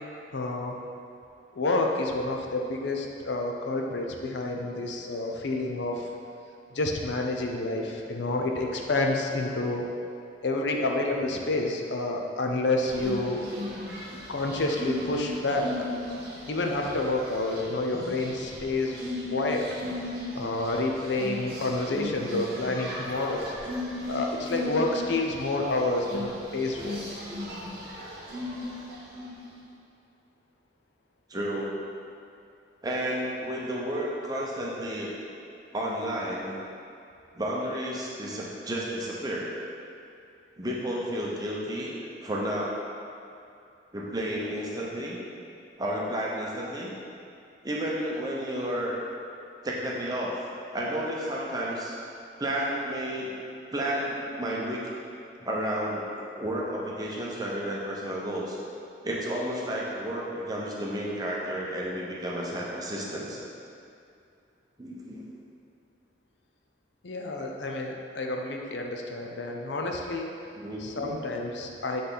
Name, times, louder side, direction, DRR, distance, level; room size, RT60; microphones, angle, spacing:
voice 1, 0.3-0.8 1.5-6.1 6.7-9.8 10.4-13.4 14.3-15.7 16.5-19.0 19.3-19.7 20.3-23.5 24.1-27.0 67.0-70.3 70.8-72.0, left 2 dB, 75° left, 1 dB, 0.6 m, -29 dB
sound 1, 12.8-29.5, left 1 dB, 55° right, 1.2 m, -37 dB
voice 2, 31.3-31.7 32.8-35.1 35.7-36.6 37.3-39.5 40.6-42.0 42.2-42.8 43.9-45.2 45.8-46.9 47.6-49.1 49.6-50.4 50.7-52.0 52.4-53.4 53.7-54.9 55.4-56.1 56.4-58.6 59.0-63.4 64.8-65.2 70.5-71.1, equal, 20° right, -4 dB, 0.8 m, -31 dB
7.9 x 3.4 x 4.0 m, 2.6 s
head